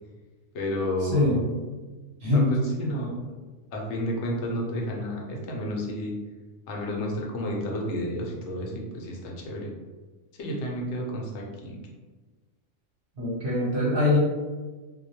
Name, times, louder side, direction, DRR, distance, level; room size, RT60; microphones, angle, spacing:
voice 1, 0.5-1.4 2.3-3.2 3.7-6.1 6.7-9.7 10.3-11.8, equal, 65° left, -1 dB, 0.8 m, -31 dB
voice 2, 1.1-1.5 2.2-2.5 13.2-14.2, left 2 dB, 50° right, -7 dB, 0.8 m, -23 dB
2.2 x 2.0 x 2.7 m, 1.3 s
omnidirectional pair, 1.4 m